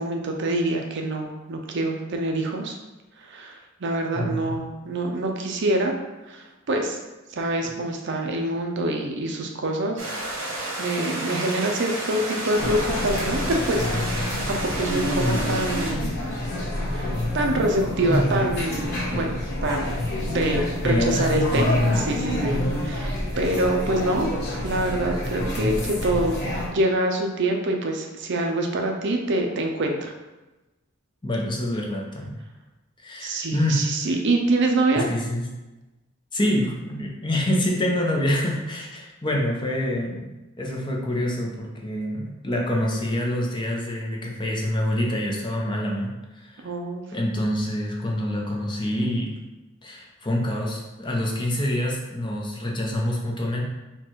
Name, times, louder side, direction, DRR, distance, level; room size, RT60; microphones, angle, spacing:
voice 1, 0.0-2.7 3.2-5.9 6.3-7.0 7.3-10.1 10.4-10.5 10.8-16.1 16.9-19.4 19.6-24.3 24.6-26.4 26.7-30.1 33.2-35.0 46.6-47.0, right 1 dB, 60° right, 2 dB, 0.6 m, -25 dB
voice 2, 4.1-4.6 7.6-7.7 18.1-18.3 20.8-21.4 31.2-32.4 33.0-33.9 34.9-35.5 36.3-40.3 40.6-46.7 47.1-49.3 49.8-53.6, left 1 dB, 20° left, -1 dB, 0.7 m, -26 dB
sound 1, 10.0-15.9, right 1 dB, 75° right, 1.3 m, -31 dB
sound 2, 12.6-26.7, left 1 dB, 50° left, 1.3 m, -27 dB
4.4 x 2.4 x 4.5 m, 1.1 s
head